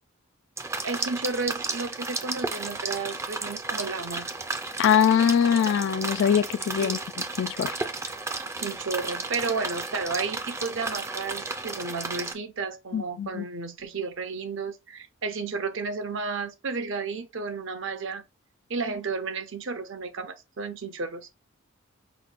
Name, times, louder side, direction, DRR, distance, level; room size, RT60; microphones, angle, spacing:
sound 1, 0.6-12.3, right 3 dB, 15° right, 0.4 m, -33 dB
voice 1, 0.8-4.4 6.8-7.0 8.6-18.2 18.7-21.3, right 4 dB, 65° right, 0.7 m, -32 dB
voice 2, 4.8-7.0 7.4-7.7 12.9-13.4, left 8 dB, 60° left, 0.3 m, -22 dB
5.7 x 2.2 x 2.5 m
head